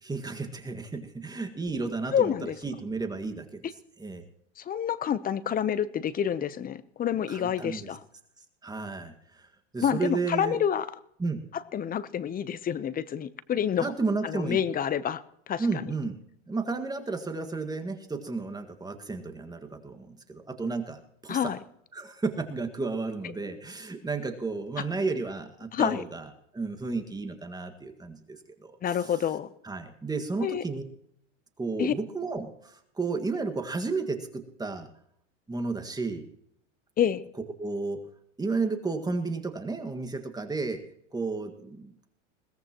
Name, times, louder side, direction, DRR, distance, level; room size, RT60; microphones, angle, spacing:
voice 1, 0.0-3.6 4.0-4.2 7.3-7.9 8.6-9.5 9.7-10.6 11.2-11.4 13.8-14.6 15.6-16.2 16.5-21.5 21.9-26.3 26.5-28.7 29.0-29.1 29.6-30.8 31.6-34.9 35.5-36.2 37.6-38.0 38.4-40.8 41.1-42.1, right 3 dB, 10° right, 6 dB, 1.8 m, -32 dB
voice 2, 2.1-2.6 4.6-8.0 9.8-10.9 11.5-13.9 14.2-15.2 15.5-15.9 21.3-21.6 25.7-26.0 28.8-29.5 30.4-30.6 31.8-31.9 37.0-37.2, left 9 dB, 25° left, 16 dB, 0.8 m, -28 dB
21.5 x 17.0 x 3.0 m, 0.72 s
hypercardioid pair, 115°, 37 cm